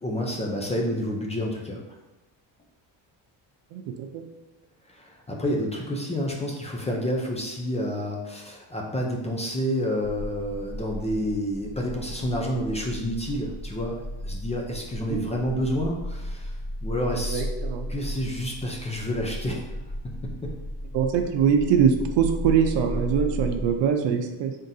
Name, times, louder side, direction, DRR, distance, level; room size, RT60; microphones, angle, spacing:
voice 1, 0.0-2.0 4.9-16.5 16.8-17.4 17.9-19.7 20.2-20.5, equal, 15° left, -1 dB, 0.5 m, -29 dB
voice 2, 3.7-4.2 15.1-15.2 17.2-17.9 20.9-24.5, right 7 dB, 75° right, 5 dB, 0.6 m, -23 dB
sound 1, 10.0-23.7, equal, 50° left, 1.5 m, -35 dB
3.8 x 3.6 x 2.7 m, 1.0 s
cardioid pair, 120°, 44 cm